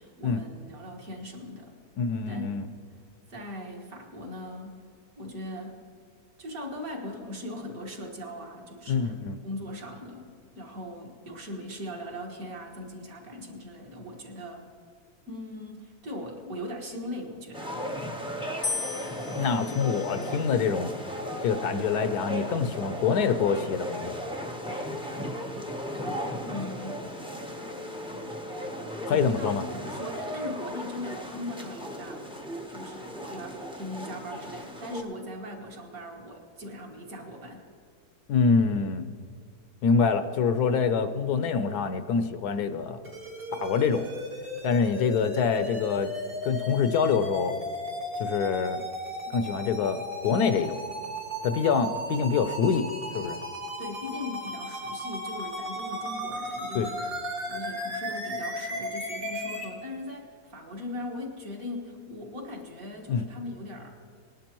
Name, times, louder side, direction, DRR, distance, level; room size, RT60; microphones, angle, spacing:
voice 1, 0.0-1.7 2.3-2.4 3.3-4.8 5.2-5.8 6.4-14.7 15.3-17.7 26.4-27.1 29.1-32.3 32.7-37.7 53.8-57.2 57.5-63.9, left 1 dB, 60° right, -1 dB, 2.1 m, -39 dB
voice 2, 2.0-2.6 8.9-9.4 19.4-20.9 21.4-24.2 29.1-29.6 38.3-39.1 39.8-43.0 43.5-44.1 44.6-46.1 46.4-47.5 48.2-48.8 49.3-50.8 51.4-53.4 56.7-56.9 63.1-63.2, left 5 dB, 75° left, 10 dB, 1.2 m, -25 dB
sound 1, 17.5-35.0, equal, 5° right, 0.5 m, -36 dB
sound 2, 18.6-20.8 21.6-22.2, left 4 dB, 55° left, 0.5 m, -37 dB
sound 3, 43.0-59.6, equal, 85° right, 4.0 m, -35 dB
20.0 x 11.5 x 3.0 m, 2.3 s
omnidirectional pair, 1.7 m